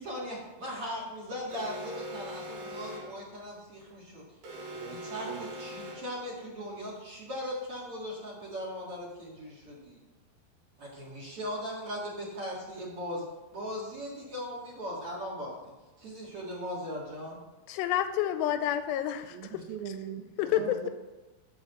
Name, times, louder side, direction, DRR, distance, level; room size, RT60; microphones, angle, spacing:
voice 1, 0.0-4.2 4.9-10.0 10.8-13.2 13.5-17.4 19.5-19.6 20.6-20.8, equal, 45° right, -2 dB, 2.0 m, -39 dB
Alarm, 1.5-3.2 4.4-6.2, equal, 65° right, 4.5 m, -42 dB
voice 2, 4.7-5.0 5.3-5.5 19.3-20.3 20.5-20.9, right 9 dB, 80° right, 3 dB, 2.2 m, -40 dB
voice 3, 17.7-19.6 20.4-20.8, left 11 dB, 85° left, 10 dB, 2.6 m, -29 dB
10.5 x 4.7 x 6.9 m, 1.2 s
omnidirectional pair, 5.0 m